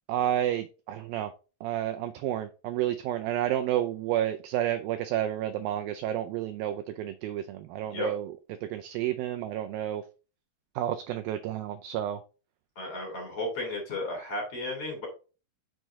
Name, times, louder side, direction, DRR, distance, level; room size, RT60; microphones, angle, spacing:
voice 1, 0.1-1.3 1.6-8.3 8.6-10.0 10.8-12.2, right 12 dB, 85° right, 7 dB, 2.1 m, -30 dB
voice 2, 12.8-15.1, left 2 dB, 40° left, 0 dB, 3.6 m, -34 dB
6.6 x 6.1 x 3.2 m, 0.33 s
omnidirectional pair, 4.6 m